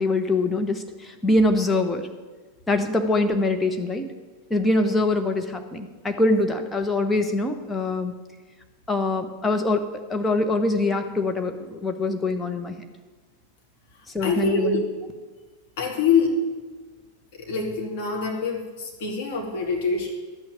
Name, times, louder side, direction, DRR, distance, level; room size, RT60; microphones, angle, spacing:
voice 1, 0.0-2.1 2.7-4.1 4.5-8.1 8.9-12.7 14.1-14.8, left 2 dB, 10° left, 5 dB, 1.1 m, -23 dB
voice 2, 14.2-14.8 15.8-16.4 17.3-20.1, left 4 dB, 50° left, -1 dB, 2.8 m, -25 dB
12.0 x 6.3 x 8.6 m, 1.3 s
figure-of-eight pair, 90°, 0 cm